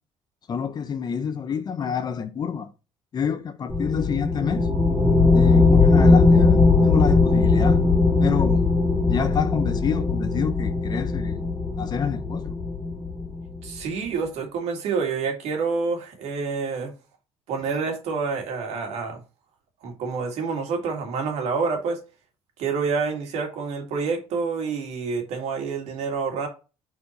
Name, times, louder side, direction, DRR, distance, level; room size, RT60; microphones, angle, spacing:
voice 1, 0.5-2.7 3.1-4.7 5.3-7.8 8.2-8.6 9.0-11.4 11.8-12.5, left 7 dB, 40° left, 0.8 m, -28 dB
sound 1, 3.7-13.7, left 3 dB, 20° left, 2.5 m, -19 dB
voice 2, 13.6-16.9 17.5-19.2 19.8-22.0 22.6-26.5, right 5 dB, 80° right, 2.1 m, -28 dB
4.3 x 4.3 x 5.1 m
cardioid pair, 120°, 11 cm